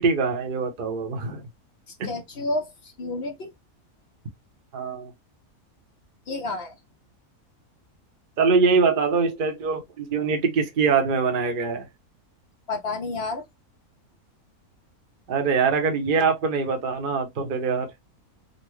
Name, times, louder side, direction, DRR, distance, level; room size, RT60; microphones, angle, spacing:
voice 1, 0.0-1.4 4.7-5.1 8.4-11.9 15.3-17.9, right 5 dB, 40° right, 0.8 m, -23 dB
voice 2, 2.0-3.5 6.3-6.8 12.7-13.4, left 2 dB, 55° left, 0.8 m, -30 dB
4.1 x 2.0 x 3.0 m
omnidirectional pair, 1.6 m